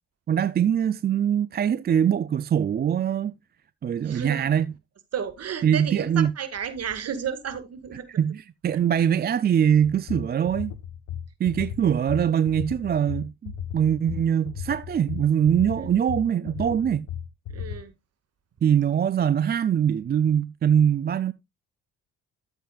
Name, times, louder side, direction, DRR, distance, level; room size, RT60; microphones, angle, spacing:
voice 1, 0.3-3.3 3.8-4.7 5.6-6.3 8.2-10.7 11.4-17.1 18.6-21.3, right 9 dB, 35° right, 0.4 m, -23 dB
voice 2, 4.1-4.5 5.1-8.1 17.5-17.9, right 7 dB, 55° right, 1.9 m, -32 dB
sound 1, 9.8-17.8, left 9 dB, 85° left, 1.2 m, -35 dB
12.5 x 8.1 x 2.4 m
cardioid pair, 90°, 30 cm